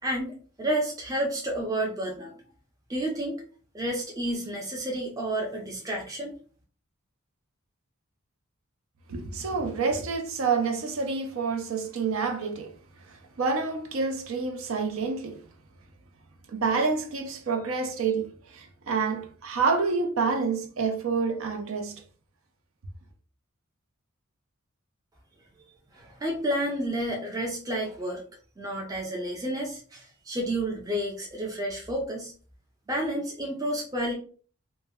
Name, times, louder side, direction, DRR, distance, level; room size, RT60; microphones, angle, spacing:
voice 1, 0.0-2.3 2.9-3.4 3.7-6.4 25.9-28.2 28.6-32.3 32.9-34.1, right 1 dB, 15° right, 0.4 m, -30 dB
voice 2, 9.1-12.7 13.1-15.4 16.5-22.0, right 4 dB, 75° right, 0.5 m, -28 dB
2.1 x 2.0 x 3.4 m
head